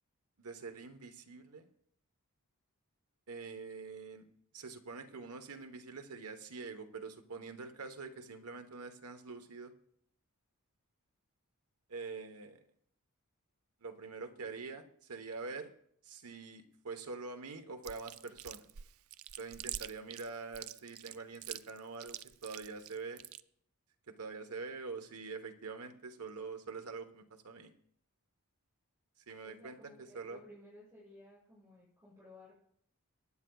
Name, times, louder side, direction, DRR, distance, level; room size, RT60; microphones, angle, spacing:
voice 1, 0.4-1.7 3.3-4.2 4.5-9.7 11.9-12.6 13.8-15.7 16.0-18.6 19.4-23.2 24.1-27.7 29.3-29.8 30.1-30.4, right 4 dB, 85° right, 7 dB, 1.1 m, -45 dB
Chewing mastication, 17.8-23.4, right 12 dB, 70° right, 0.4 m, -45 dB
voice 2, 29.4-32.5, left 1 dB, 15° right, -11 dB, 6.2 m, -56 dB
23.5 x 10.0 x 2.4 m, 0.68 s
head